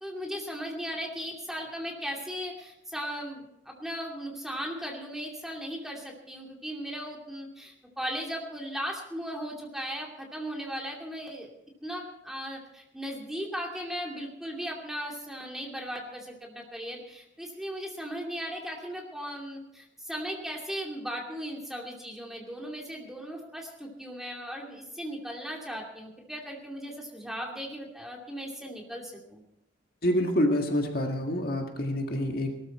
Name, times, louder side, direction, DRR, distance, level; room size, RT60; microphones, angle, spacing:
voice 1, 0.0-11.5 11.8-29.4, equal, ahead, -1 dB, 2.6 m, -37 dB
voice 2, 30.0-32.5, left 1 dB, 50° left, 2 dB, 1.9 m, -27 dB
19.0 x 13.5 x 4.4 m, 0.81 s
head